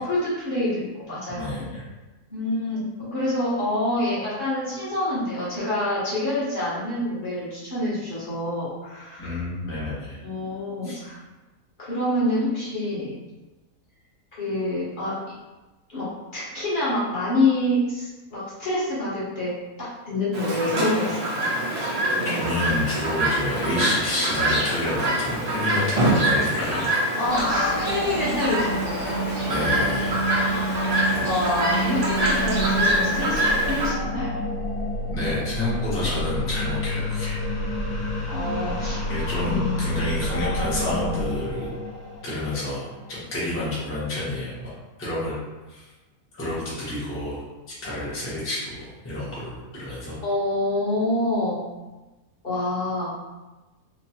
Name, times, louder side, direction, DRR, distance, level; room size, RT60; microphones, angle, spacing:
voice 1, 0.0-1.5 2.3-9.5 10.2-11.2 11.8-13.2 14.3-15.2 15.9-19.5 19.8-21.5 27.2-29.0 30.3-30.9 31.2-34.4 38.3-39.0 39.4-39.9 50.2-51.6 52.4-53.1, left 1 dB, 45° left, -9 dB, 0.7 m, -27 dB
voice 2, 1.3-1.8 9.2-10.2 10.8-11.0 22.2-26.9 29.5-30.2 35.1-37.4 39.1-41.7 42.2-44.7 45.0-45.3 45.7-45.8 46.4-47.4 47.8-48.8 49.0-50.2, left 1 dB, 20° left, -9 dB, 0.3 m, -29 dB
Chirp tweet, 20.3-33.9, right 1 dB, 65° right, 0.3 m, -25 dB
sound 1, 27.2-43.5, equal, 80° left, 1.2 m, -29 dB
2.9 x 2.0 x 2.7 m, 1.1 s
omnidirectional pair, 1.6 m